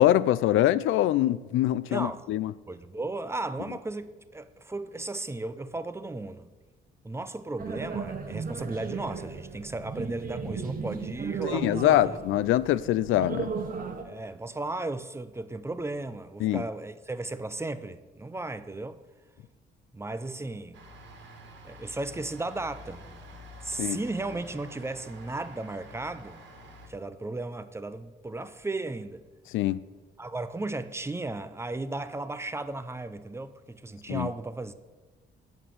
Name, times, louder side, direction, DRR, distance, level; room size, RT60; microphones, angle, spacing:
voice 1, 0.0-2.5 11.5-13.5 16.4-16.6 23.8-24.0 29.5-29.8 34.1-34.3, left 13 dB, 85° left, 0.5 m, -24 dB
voice 2, 2.7-6.5 7.0-12.2 14.0-19.0 19.9-20.8 21.6-23.1 23.6-26.4 26.9-29.2 30.2-34.7, right 2 dB, 15° right, 0.6 m, -35 dB
sound 1, 7.6-14.0, right 5 dB, 45° right, 1.2 m, -35 dB
sound 2, 20.7-26.9, equal, 65° right, 2.1 m, -48 dB
8.4 x 7.2 x 7.5 m
cardioid pair, 90°, 20 cm